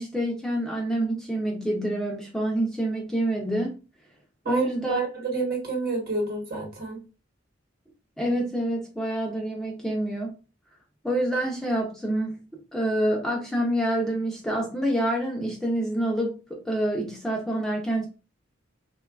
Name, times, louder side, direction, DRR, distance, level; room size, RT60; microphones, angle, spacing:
voice 1, 0.0-3.8 4.5-5.0 8.2-10.3 11.0-18.1, right 1 dB, ahead, 0.4 m, -27 dB
voice 2, 4.4-7.0, right 3 dB, 50° right, 1.0 m, -28 dB
3.0 x 2.2 x 2.3 m
head